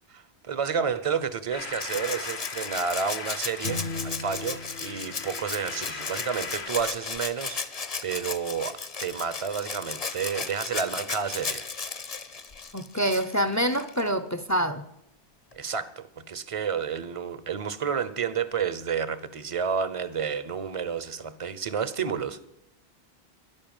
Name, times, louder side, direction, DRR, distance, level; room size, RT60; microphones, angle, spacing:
voice 1, 0.1-7.6 8.0-11.6 15.5-22.5, right 6 dB, 35° right, 15 dB, 0.8 m, -30 dB
sound 1, 1.5-6.7, left 4 dB, 75° left, 1.6 m, -39 dB
Rattle (instrument), 1.8-14.1 15.5-15.6, left 4 dB, 40° left, 0.9 m, -35 dB
sound 2, 3.6-6.3, left 3 dB, 60° left, 1.0 m, -38 dB
voice 2, 12.7-14.9, equal, 20° left, 12 dB, 0.6 m, -26 dB
11.0 x 11.0 x 9.0 m, 0.81 s
omnidirectional pair, 1.1 m